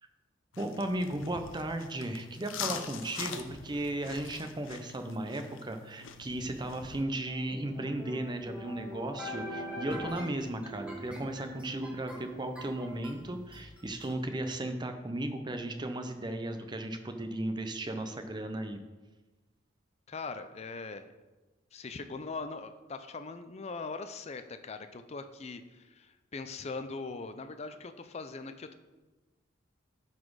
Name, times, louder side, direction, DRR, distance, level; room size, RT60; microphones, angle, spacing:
sound 1, 0.5-7.0, left 6 dB, 80° left, 0.7 m, -43 dB
voice 1, 0.6-18.8, right 1 dB, 20° right, 7 dB, 0.6 m, -35 dB
sound 2, 7.3-14.1, equal, 5° right, 1.4 m, -43 dB
voice 2, 20.1-21.1 21.7-28.8, left 4 dB, 35° left, 9 dB, 0.5 m, -41 dB
12.5 x 4.2 x 4.7 m, 1.2 s
head